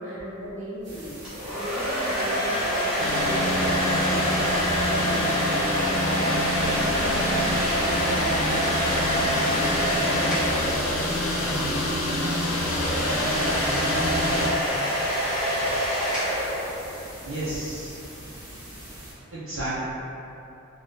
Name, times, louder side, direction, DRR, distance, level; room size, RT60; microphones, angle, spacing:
voice 1, 0.0-5.7 6.1-12.8, equal, 35° right, -12 dB, 1.3 m, -36 dB
sound 1, 0.8-19.1, right 1 dB, 60° right, 0.9 m, -43 dB
sound 2, 1.2-11.4 12.4-17.2, equal, 5° right, 1.2 m, -26 dB
sound 3, 3.0-14.5, left 1 dB, 80° left, 0.6 m, -27 dB
voice 2, 17.0-18.0 19.3-19.8, right 1 dB, 85° right, -11 dB, 0.6 m, -33 dB
3.8 x 2.4 x 2.6 m, 2.8 s
head